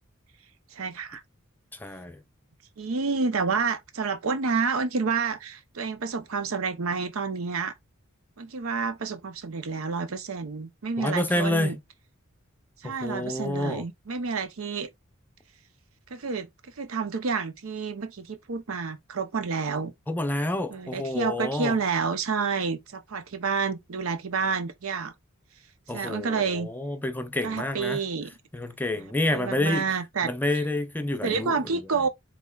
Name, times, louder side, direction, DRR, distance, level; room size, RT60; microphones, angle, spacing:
voice 1, 0.7-1.2 2.8-7.7 8.4-11.8 12.8-14.9 16.1-16.5 16.8-19.9 20.7-25.1 25.9-26.7 27.4-28.3 29.0-30.3 31.2-32.1, right 5 dB, 85° right, 0.7 m, -29 dB
voice 2, 1.8-2.2 11.0-11.7 12.8-13.8 20.1-21.8 25.9-28.0 28.5-29.9 30.2-31.8, left 1 dB, 10° left, 0.6 m, -28 dB
5.2 x 3.7 x 2.3 m
head